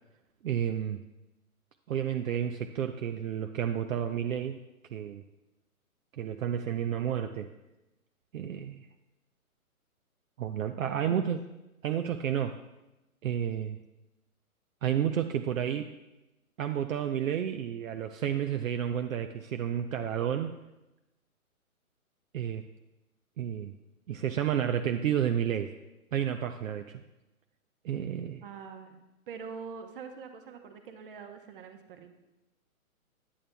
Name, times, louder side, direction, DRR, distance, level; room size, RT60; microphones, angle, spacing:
voice 1, 0.4-1.0 1.9-4.6 4.9-5.2 6.2-7.5 8.3-8.9 10.4-11.4 11.8-12.6 13.2-13.8 14.8-15.9 16.6-20.6 22.3-22.6 23.4-23.7 24.1-25.7 26.1-27.0 27.8-28.4, right 9 dB, 65° right, 6 dB, 0.5 m, -31 dB
voice 2, 10.9-11.3 28.4-29.0 29.3-32.1, right 5 dB, 40° right, 6 dB, 0.9 m, -44 dB
11.0 x 8.6 x 2.2 m, 0.99 s
hypercardioid pair, 145°, 43 cm